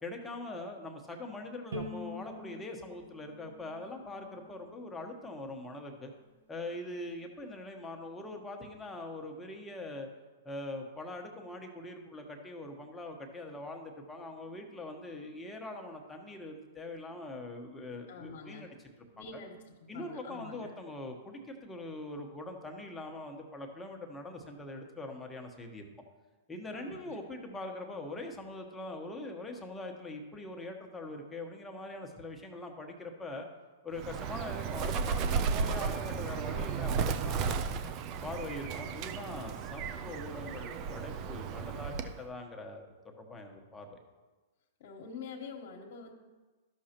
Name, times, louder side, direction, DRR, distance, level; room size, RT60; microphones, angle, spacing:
voice 1, 0.0-6.1 6.5-10.1 10.4-18.7 19.2-19.4 19.9-25.8 26.5-33.5 33.8-37.6 38.2-44.0, left 2 dB, 10° left, 2 dB, 1.1 m, -42 dB
Bowed string instrument, 1.7-4.9, left 1 dB, 75° right, 1.2 m, -45 dB
voice 2, 18.1-18.7 19.1-20.7 26.7-27.2 44.8-46.1, left 5 dB, 60° left, -2 dB, 1.3 m, -46 dB
Bird, 34.0-42.2, right 6 dB, 40° right, 0.5 m, -34 dB
12.5 x 6.4 x 2.9 m, 1.3 s
hypercardioid pair, 115°, 0 cm